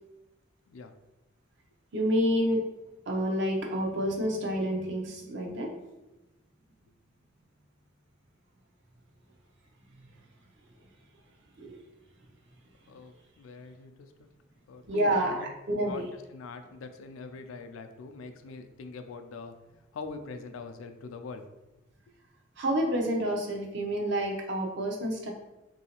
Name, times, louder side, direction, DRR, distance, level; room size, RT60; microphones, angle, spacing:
voice 1, 1.9-2.6 3.1-5.7 11.6-11.8 12.9-13.0 14.8-16.0 22.6-25.3, equal, 60° right, 0 dB, 0.6 m, -29 dB
voice 2, 12.9-14.3 14.7-15.5 15.8-19.6 19.9-21.5, left 4 dB, 90° left, 7 dB, 0.4 m, -43 dB
3.1 x 2.7 x 2.8 m, 1.0 s
head